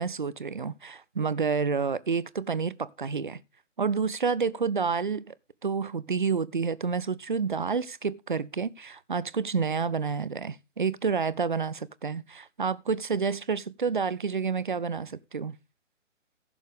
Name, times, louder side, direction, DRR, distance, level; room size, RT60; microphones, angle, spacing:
voice 1, 0.0-3.4 3.8-5.3 5.6-15.6, right 5 dB, 40° right, 0.5 m, -29 dB
15.5 x 7.2 x 3.3 m
figure-of-eight pair, 145°, 38 cm